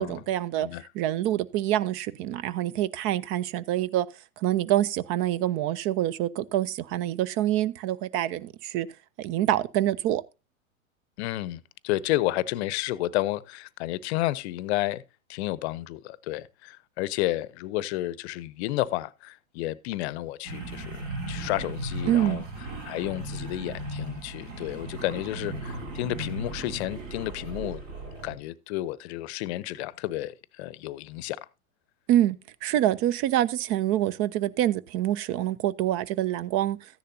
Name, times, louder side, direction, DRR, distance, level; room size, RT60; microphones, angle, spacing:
voice 1, 0.0-0.7 0.9-4.1 4.4-8.9 9.2-10.2 22.1-22.4 32.1-32.4 32.6-36.8, right 13 dB, 30° right, 0.5 m, -26 dB
voice 2, 11.2-15.0 15.3-21.0 21.3-22.4 22.8-27.8 28.2-31.4, left 16 dB, 50° left, 0.7 m, -31 dB
sound 1, 20.4-28.3, right 2 dB, 65° right, 5.5 m, -37 dB
14.0 x 10.0 x 2.7 m
hypercardioid pair, 100°, 42 cm